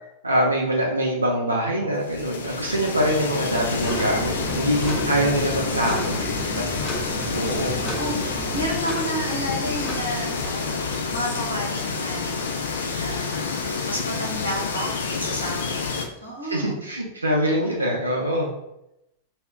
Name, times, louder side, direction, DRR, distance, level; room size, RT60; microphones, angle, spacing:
voice 1, 0.2-6.2 6.6-6.7 7.3-7.7 16.5-18.5, equal, 80° right, -1 dB, 0.4 m, -24 dB
sound 1, 2.0-16.1, left 4 dB, 65° left, 0.3 m, -28 dB
sound 2, 3.5-8.8, right 2 dB, 10° right, 0.4 m, -35 dB
sound 3, 3.8-10.0, equal, 15° left, 0.8 m, -36 dB
voice 2, 5.7-6.3 7.8-15.9 16.2-16.8, equal, 85° left, -2 dB, 0.8 m, -32 dB
2.2 x 2.1 x 3.6 m, 0.84 s
figure-of-eight pair, 90°, 0 cm